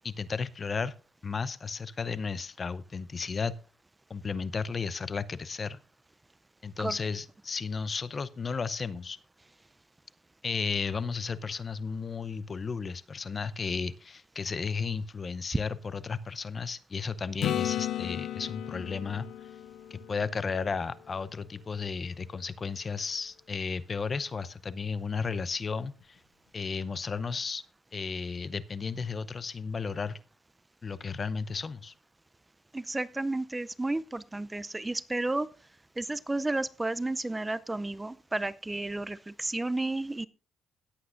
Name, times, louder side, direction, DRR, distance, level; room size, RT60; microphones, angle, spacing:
voice 1, 0.0-0.9 1.2-3.6 4.1-5.8 6.6-9.2 10.4-19.3 19.9-26.2 26.5-27.6 27.9-30.2 30.8-31.9, left 5 dB, 35° left, 17 dB, 0.7 m, -34 dB
Acoustic guitar / Strum, 17.4-21.2 26.0-26.1, left 11 dB, 75° left, 0.6 m, -35 dB
voice 2, 32.7-35.5 36.0-40.3, right 2 dB, 15° right, 17 dB, 0.5 m, -32 dB
17.5 x 8.5 x 2.5 m, 0.36 s
cardioid pair, 90°, 0 cm